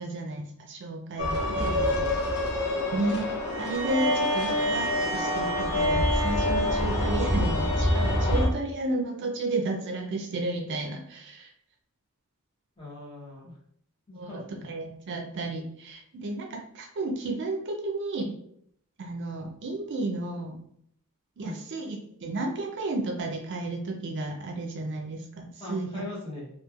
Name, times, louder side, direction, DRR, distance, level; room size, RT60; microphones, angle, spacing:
voice 1, 0.0-1.7 2.9-3.3 3.6-11.5 14.2-14.4 14.7-18.3 19.0-20.6 21.4-22.0 22.2-26.0, right 2 dB, 50° right, 2 dB, 0.4 m, -32 dB
sound 1, 1.2-8.5, left 1 dB, 80° left, 0.8 m, -26 dB
voice 2, 1.4-2.1 12.8-13.6 14.1-14.5 15.1-15.2 21.4-21.6 25.6-26.5, left 2 dB, 25° left, -5 dB, 0.8 m, -39 dB
3.0 x 2.3 x 2.3 m, 0.69 s
head